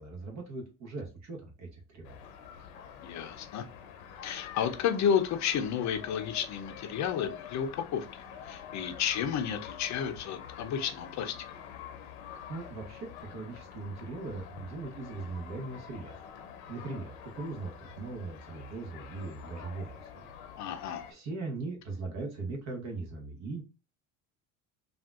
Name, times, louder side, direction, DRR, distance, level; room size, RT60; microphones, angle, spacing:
voice 1, 0.0-2.3 12.5-16.2 16.7-20.3 20.6-20.7 21.1-23.6, right 3 dB, 45° right, 2 dB, 1.0 m, -40 dB
sound 1, 2.0-21.1, left 8 dB, 80° left, 0.7 m, -47 dB
voice 2, 3.0-3.7 4.2-11.4 20.6-21.0, left 8 dB, 50° left, 9 dB, 0.6 m, -32 dB
3.5 x 2.4 x 2.4 m, 0.32 s
supercardioid pair, 95°, 38 cm